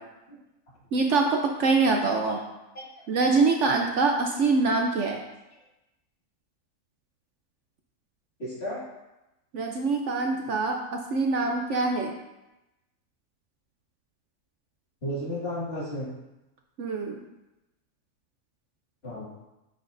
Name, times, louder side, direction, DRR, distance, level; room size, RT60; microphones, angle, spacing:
voice 1, 0.9-2.4 3.1-5.2 9.5-12.1 16.8-17.2, right 3 dB, 60° right, 2 dB, 0.9 m, -24 dB
voice 2, 2.7-3.1 8.4-8.8 15.0-16.1 19.0-19.2, equal, 45° left, -7 dB, 2.3 m, -33 dB
9.0 x 6.0 x 2.6 m, 0.97 s
omnidirectional pair, 1.5 m